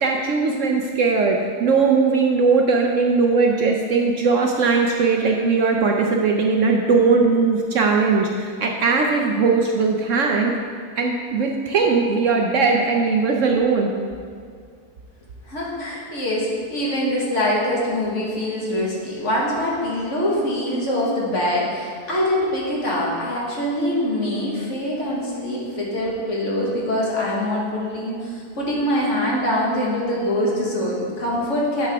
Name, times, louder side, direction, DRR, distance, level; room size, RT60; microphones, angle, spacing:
voice 1, 0.0-10.5 11.0-13.9, right 4 dB, 65° right, 1 dB, 0.9 m, -19 dB
voice 2, 15.5-31.9, left 1 dB, 50° left, -4 dB, 1.8 m, -24 dB
9.1 x 6.7 x 3.5 m, 2.2 s
omnidirectional pair, 1.6 m